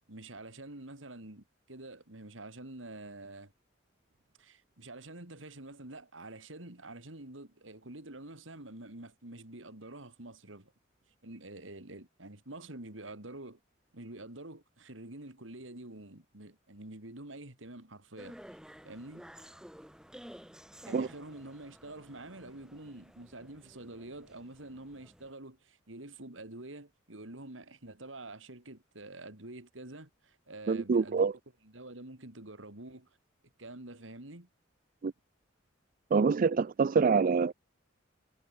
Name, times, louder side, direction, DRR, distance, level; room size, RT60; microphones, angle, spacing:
voice 1, 0.1-3.5 4.4-10.7 11.2-13.6 13.9-18.4 18.8-19.2 20.8-31.3 31.6-33.1 33.6-34.5, right 2 dB, 90° right, 3.4 m, -47 dB
sound 1, 18.2-25.3, equal, 5° right, 2.8 m, -53 dB
voice 2, 30.7-31.3 35.0-35.1 36.1-37.5, right 5 dB, 45° right, 0.4 m, -26 dB
head